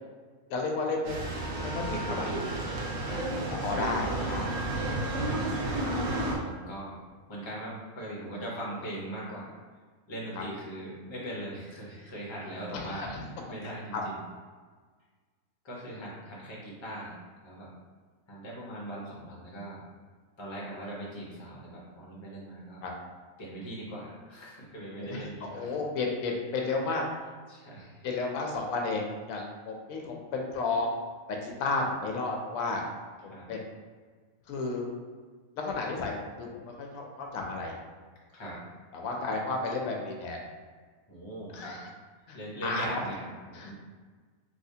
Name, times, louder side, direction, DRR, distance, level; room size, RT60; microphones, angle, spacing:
voice 1, 0.5-2.3 3.6-4.5 10.4-10.5 12.7-13.2 13.9-14.0 22.8-22.9 25.0-27.0 28.0-30.9 31.3-32.8 33.2-33.6 34.5-34.9 35.6-36.5 36.8-37.7 38.9-40.4 41.5-41.9 42.3-42.9 43.5-43.7, left 3 dB, 90° left, 1 dB, 1.0 m, -32 dB
sound 1, 1.0-6.4, right 2 dB, 75° right, 1.1 m, -31 dB
voice 2, 6.4-7.0 7.3-9.5 10.1-14.2 15.6-17.1 17.4-17.7 18.3-19.8 20.4-22.8 23.4-25.8 27.5-28.1 33.3-33.5 38.3-38.6 39.1-39.3 41.1-41.9 42.3-43.7, right 1 dB, 25° left, -5 dB, 0.8 m, -40 dB
3.2 x 3.0 x 2.7 m, 1.5 s
omnidirectional pair, 1.4 m